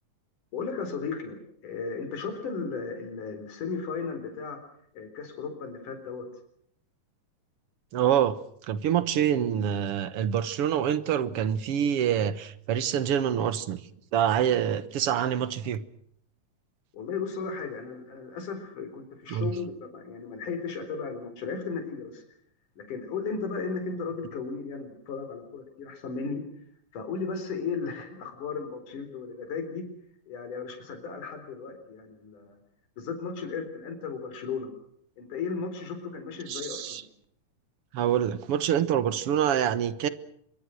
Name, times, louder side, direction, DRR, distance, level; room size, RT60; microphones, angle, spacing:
voice 1, 0.5-4.6 4.9-6.2 16.9-22.2 22.8-26.4 26.9-29.8 30.3-32.6 33.0-34.7 35.2-37.0, left 5 dB, 85° left, 7 dB, 5.5 m, -35 dB
voice 2, 7.9-8.4 8.7-13.8 14.1-15.8 19.3-19.5 36.5-37.0 37.9-40.1, right 9 dB, 60° right, 14 dB, 1.7 m, -26 dB
25.5 x 23.0 x 6.4 m, 0.68 s
omnidirectional pair, 3.5 m